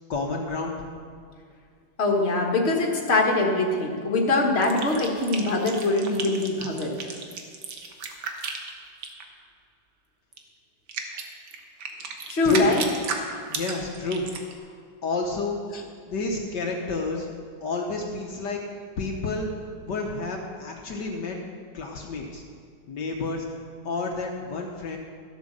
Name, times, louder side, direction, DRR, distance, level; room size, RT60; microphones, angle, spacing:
voice 1, 0.1-0.7 12.4-12.8 13.5-14.3 14.7-14.8 15.0-15.6 16.1-17.3 17.6-18.6 19.0-19.5 19.8-21.4 21.7-22.4 22.9-23.5 23.8-25.0, left 3 dB, 65° left, 1 dB, 1.6 m, -29 dB
voice 2, 2.0-6.9 12.3-12.8, left 2 dB, 35° left, 1 dB, 1.7 m, -23 dB
sound 1, 4.6-9.2 10.3-10.4 10.9-14.5, right 5 dB, 90° right, 1.9 m, -34 dB
13.5 x 8.3 x 6.6 m, 2.1 s
omnidirectional pair, 2.0 m